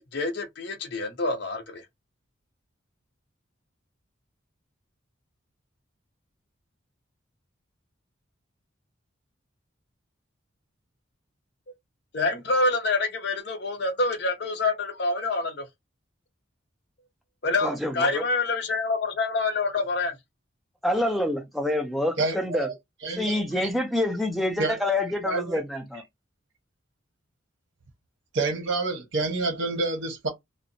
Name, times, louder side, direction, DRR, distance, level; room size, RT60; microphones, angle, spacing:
voice 1, 0.0-1.8 12.1-15.6 17.4-20.1, left 3 dB, 55° left, 0.6 m, -26 dB
voice 2, 17.6-18.2 20.8-22.7 23.1-26.0, left 1 dB, ahead, 0.4 m, -27 dB
voice 3, 22.2-22.7 23.0-23.5 24.6-24.8 25.2-25.6 28.3-30.3, right 3 dB, 65° right, 0.8 m, -28 dB
2.6 x 2.0 x 2.6 m
head